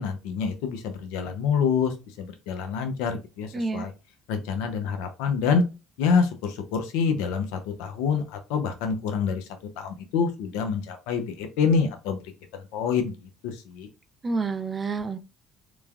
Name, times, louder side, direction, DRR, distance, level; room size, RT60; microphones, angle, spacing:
voice 1, 0.0-3.9 4.3-5.6 6.0-9.5 9.8-12.2 12.5-13.9, left 6 dB, 85° left, 0.5 m, -27 dB
voice 2, 3.5-3.9 14.2-15.3, right 4 dB, 30° right, 0.3 m, -29 dB
3.1 x 2.1 x 2.3 m
supercardioid pair, 85°, 0 cm